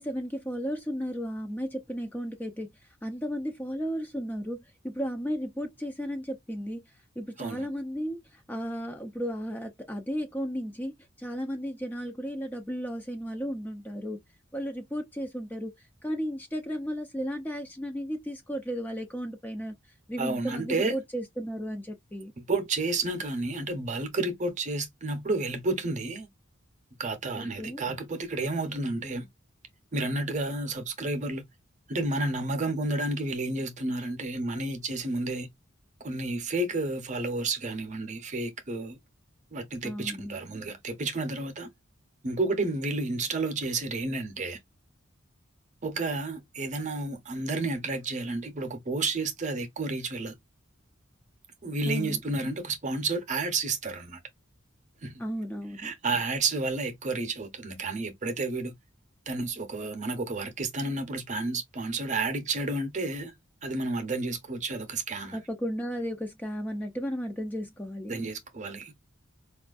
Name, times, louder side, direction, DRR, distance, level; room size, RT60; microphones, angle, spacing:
voice 1, 0.0-14.2 14.5-22.3 27.4-27.8 39.8-40.4 51.8-52.2 55.2-55.9 65.3-68.1, equal, 10° left, 0.4 m, -34 dB
voice 2, 20.2-20.9 22.4-26.3 27.0-29.3 29.9-31.4 31.9-35.5 36.0-39.0 39.5-41.7 42.2-44.6 45.8-50.3 51.6-54.2 55.0-55.1 55.8-58.7 59.3-63.3 63.6-65.4 68.1-68.9, right 2 dB, 35° right, 0.7 m, -31 dB
4.3 x 2.4 x 2.3 m
head